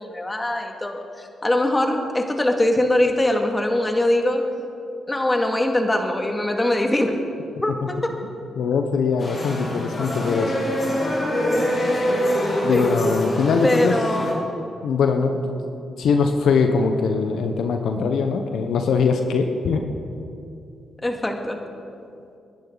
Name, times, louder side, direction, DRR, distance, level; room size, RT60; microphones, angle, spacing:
voice 1, 0.0-4.5 5.1-7.2 7.6-8.1 12.7-13.0 13.6-14.5 21.0-21.6, left 1 dB, 20° left, 3 dB, 2.3 m, -22 dB
voice 2, 8.6-10.5 12.6-13.9 14.8-15.5 16.0-19.8, left 5 dB, 75° left, 5 dB, 1.0 m, -21 dB
sound 1, 9.2-14.3, equal, 50° left, 4.3 m, -24 dB
28.5 x 11.0 x 4.1 m, 2.6 s
supercardioid pair, 55°, 0 cm